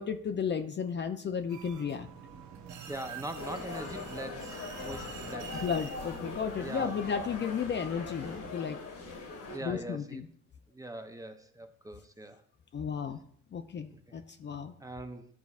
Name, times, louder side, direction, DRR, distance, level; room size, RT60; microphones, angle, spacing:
voice 1, 0.0-2.1 5.6-8.8 9.6-10.3 12.7-13.2 13.5-14.7, left 7 dB, 40° left, 8 dB, 0.4 m, -34 dB
sound 1, 1.5-8.5, right 6 dB, 70° right, 0.8 m, -47 dB
voice 2, 2.9-5.6 6.6-7.0 9.5-10.2 10.7-12.4 13.9-14.2 14.8-15.3, right 1 dB, 10° right, 7 dB, 0.6 m, -42 dB
sound 2, 3.4-9.6, left 4 dB, 75° left, 1.8 m, -41 dB
10.5 x 4.0 x 2.4 m, 0.62 s
cardioid pair, 90°, 30 cm